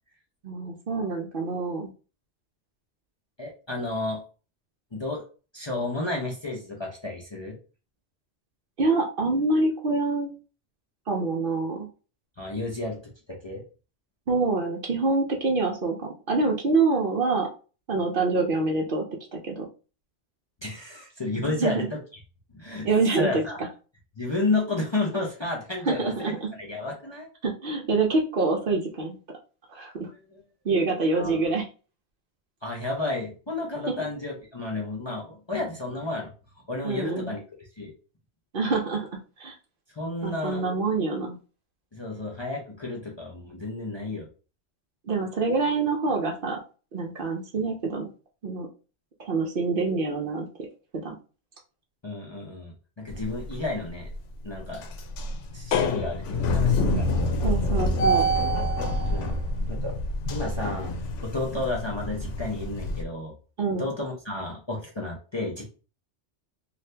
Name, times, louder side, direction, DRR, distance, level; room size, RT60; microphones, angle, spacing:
voice 1, 0.4-1.9 8.8-10.4 11.1-11.9 14.3-17.5 17.9-19.0 19.3-19.7 21.5-21.7 22.8-23.4 25.9-26.5 27.4-29.2 29.7-30.1 30.6-31.6 36.8-37.3 38.5-39.0 39.4-39.5 40.2-41.4 45.1-46.6 46.9-48.1 48.4-48.7 49.2-50.5 51.0-51.2 57.4-58.3 63.6-63.9, right 3 dB, 60° right, 2 dB, 0.7 m, -26 dB
voice 2, 3.4-4.2 4.9-5.2 5.5-7.6 12.4-13.6 20.6-22.0 22.5-22.9 23.1-23.6 24.2-27.3 30.3-30.4 31.1-31.4 32.6-36.3 36.7-37.9 40.0-40.6 41.9-44.3 52.0-54.1 54.4-54.8 55.5-57.6 59.1-59.4 59.7-60.0 60.3-60.9 61.2-63.3 63.8-65.7, left 2 dB, 30° left, -2 dB, 0.5 m, -32 dB
sound 1, 53.1-53.6 54.0-54.2 54.6-63.0, left 1 dB, 85° left, 0.9 m, -26 dB
2.7 x 2.4 x 3.2 m, 0.36 s
omnidirectional pair, 1.2 m